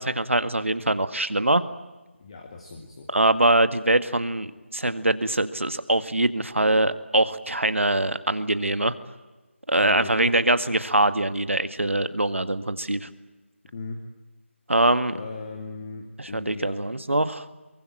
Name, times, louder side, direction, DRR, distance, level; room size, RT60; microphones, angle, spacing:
voice 1, 0.0-1.6 3.1-8.9 9.7-13.1 14.7-15.2 16.2-17.5, right 1 dB, 75° right, 11 dB, 1.9 m, -23 dB
voice 2, 2.2-3.1 9.8-10.3 13.7-14.0 15.1-16.8, left 3 dB, 25° left, 4 dB, 2.2 m, -38 dB
23.5 x 23.0 x 8.9 m, 1.1 s
figure-of-eight pair, 160°, 7 cm